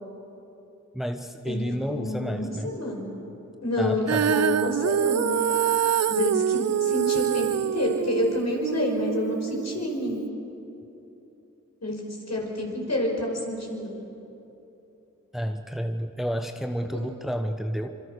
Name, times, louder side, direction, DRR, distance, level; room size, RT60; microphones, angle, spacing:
voice 1, 0.9-2.7 3.8-4.3 15.3-17.9, equal, ahead, 6 dB, 1.2 m, -30 dB
voice 2, 1.5-3.1 3.6-5.4 6.1-10.2 11.8-12.0 12.3-13.9, left 1 dB, 55° left, 0 dB, 5.9 m, -28 dB
Female singing, 4.1-10.3, right 9 dB, 55° right, 0.4 m, -25 dB
26.0 x 24.0 x 6.7 m, 3.0 s
cardioid pair, 40°, 31 cm